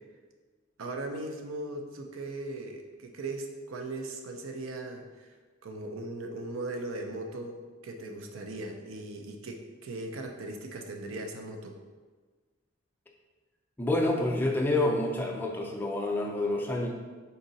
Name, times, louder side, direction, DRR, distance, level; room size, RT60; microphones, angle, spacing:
voice 1, 0.8-5.3 5.6-11.8, right 2 dB, 80° right, 3 dB, 0.5 m, -38 dB
voice 2, 13.8-16.9, left 2 dB, 10° left, 0 dB, 0.4 m, -28 dB
4.0 x 2.7 x 4.0 m, 1.4 s
head